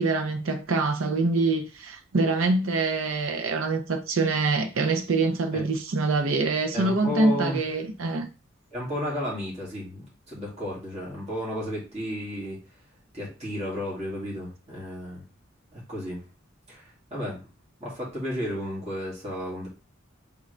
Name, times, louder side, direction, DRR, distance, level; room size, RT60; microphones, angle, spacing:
voice 1, 0.0-8.3, right 3 dB, 75° right, 0.6 m, -25 dB
voice 2, 6.7-7.6 8.7-12.6 13.1-15.2 15.7-16.2 16.7-17.4 17.8-19.7, equal, 30° right, 2.2 m, -33 dB
3.8 x 3.6 x 3.3 m
head